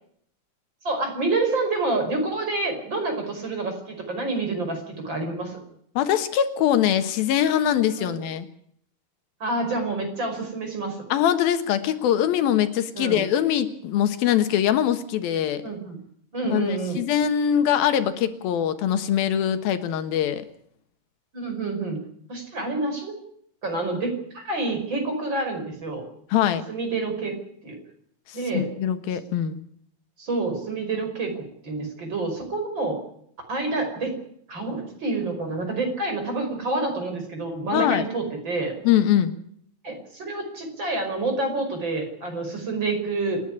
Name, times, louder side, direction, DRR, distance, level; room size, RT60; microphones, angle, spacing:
voice 1, 0.8-5.6 8.0-8.2 9.4-11.0 12.9-13.3 15.6-16.0 16.3-17.0 21.3-22.0 22.3-23.2 23.6-26.0 26.7-27.4 27.6-27.8 28.3-28.7 30.2-33.0 33.5-34.2 34.5-38.7 39.8-43.4, right 3 dB, 30° right, 4 dB, 5.7 m, -28 dB
voice 2, 6.0-8.5 11.1-15.6 16.4-20.4 26.3-26.6 28.3-29.6 37.7-38.1 38.8-39.3, left 10 dB, 85° left, 10 dB, 3.2 m, -22 dB
28.0 x 10.5 x 9.9 m, 0.67 s
omnidirectional pair, 4.1 m